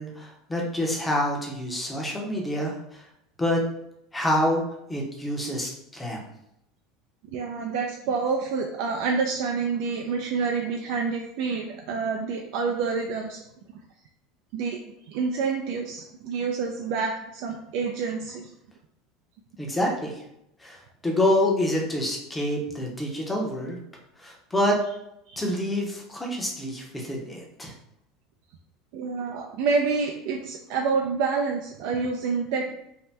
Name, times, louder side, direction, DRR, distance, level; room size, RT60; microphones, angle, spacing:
voice 1, 0.0-3.0 3.4-3.6 4.1-4.6 4.9-6.2 19.6-20.2 20.6-23.8 24.2-24.8 25.4-27.7, left 1 dB, 10° left, -1 dB, 0.7 m, -27 dB
voice 2, 7.3-13.4 14.5-14.8 15.1-18.5 25.3-25.4 28.9-32.7, right 5 dB, 65° right, 2 dB, 0.3 m, -28 dB
2.7 x 2.1 x 3.2 m, 0.79 s
supercardioid pair, 135°, 0 cm